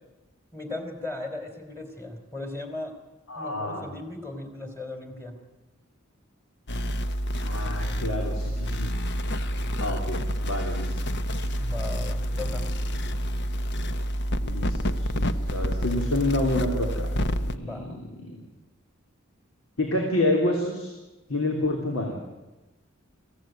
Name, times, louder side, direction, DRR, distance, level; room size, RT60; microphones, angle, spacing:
voice 1, 0.5-2.9 3.3-5.4 11.6-12.7 17.6-18.0, left 2 dB, 15° left, 5 dB, 3.3 m, -37 dB
voice 2, 3.3-3.8 7.4-8.9 9.8-11.0 14.4-17.7 18.3-18.4 19.8-20.9 21.3-22.2, left 1 dB, 80° left, 1 dB, 3.3 m, -28 dB
sound 1, 6.7-17.6, equal, 55° left, 1.0 m, -28 dB
23.0 x 15.5 x 9.1 m, 1.1 s
head